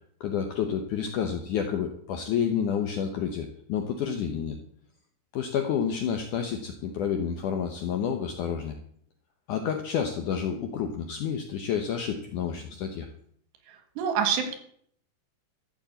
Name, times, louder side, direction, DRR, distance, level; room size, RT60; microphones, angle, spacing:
voice 1, 0.2-4.6 5.3-8.7 9.5-13.1, left 7 dB, 75° left, 5 dB, 1.9 m, -29 dB
voice 2, 13.7-14.6, right 7 dB, 80° right, 7 dB, 3.8 m, -27 dB
13.0 x 7.2 x 8.0 m, 0.65 s
omnidirectional pair, 4.9 m